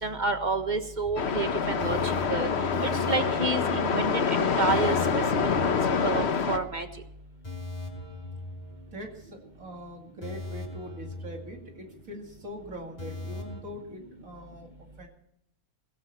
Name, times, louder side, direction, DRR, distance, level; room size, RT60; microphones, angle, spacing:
voice 1, 0.0-2.5 2.8-4.9 5.7-5.8 6.0-6.9, right 3 dB, 30° right, 8 dB, 1.5 m, -29 dB
sound 1, 1.0-6.6 6.9-7.0 7.4-9.4 9.7-9.8 10.2-12.1 12.4-12.5 13.0-13.6, left 2 dB, 25° left, 3.2 m, -40 dB
sound 2, 1.2-6.6, left 5 dB, 45° left, 1.1 m, -26 dB
voice 2, 8.9-14.7 15.0-15.1, equal, 55° right, 2 dB, 2.8 m, -42 dB
17.5 x 16.0 x 4.4 m, 0.77 s
omnidirectional pair, 1.7 m